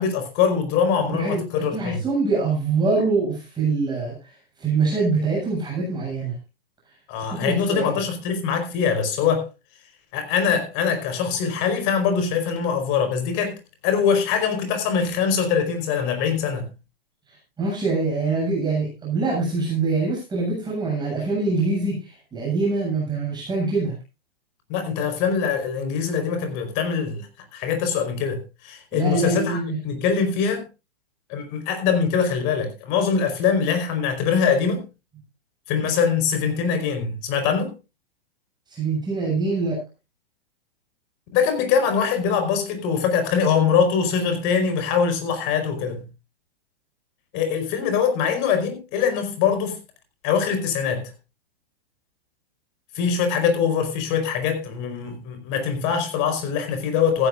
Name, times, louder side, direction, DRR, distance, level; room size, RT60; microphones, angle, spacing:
voice 1, 0.0-2.0 7.1-9.5 10.1-13.6 13.8-16.7 24.7-27.3 27.5-29.6 29.8-30.7 31.3-34.8 35.7-37.7 41.3-46.0 47.3-49.8 50.2-51.1 52.9-57.3, left 6 dB, 40° left, 4.7 m, -23 dB
voice 2, 1.0-4.3 4.6-6.4 7.3-8.0 17.3-24.0 28.9-29.8 38.7-39.8, right 3 dB, 15° right, 7.5 m, -24 dB
15.5 x 15.0 x 2.6 m
hypercardioid pair, 115°, 29 cm